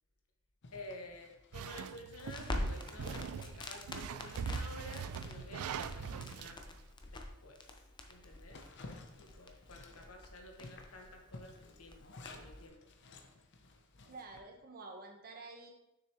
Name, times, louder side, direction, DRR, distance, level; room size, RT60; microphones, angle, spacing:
Zipper (clothing), 0.6-7.2 7.6-7.7 8.1-14.4, left 2 dB, 55° left, 0.7 m, -56 dB
voice 1, 0.7-6.7 7.0-7.6 8.1-8.6 9.2-12.9, left 2 dB, 80° left, 3 dB, 1.2 m, -52 dB
sound 1, 1.5-6.6, right 6 dB, 80° right, 0.4 m, -42 dB
Crackle, 2.1-12.7, left 1 dB, 20° left, 0.6 m, -45 dB
voice 2, 14.0-15.7, right 3 dB, 45° right, 2 dB, 1.1 m, -49 dB
6.6 x 6.5 x 3.0 m, 0.88 s
head